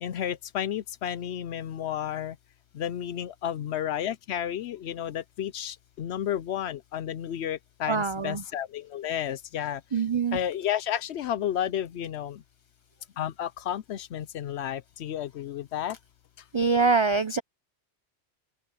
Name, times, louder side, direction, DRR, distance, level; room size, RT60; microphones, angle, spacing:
voice 1, 0.0-2.4 2.7-9.8 10.3-12.4 13.2-16.0, left 10 dB, 70° left, 0.9 m, -32 dB
voice 2, 7.9-8.4 9.9-10.4 16.5-17.4, right 4 dB, 30° right, 0.6 m, -24 dB
open air
omnidirectional pair, 1.2 m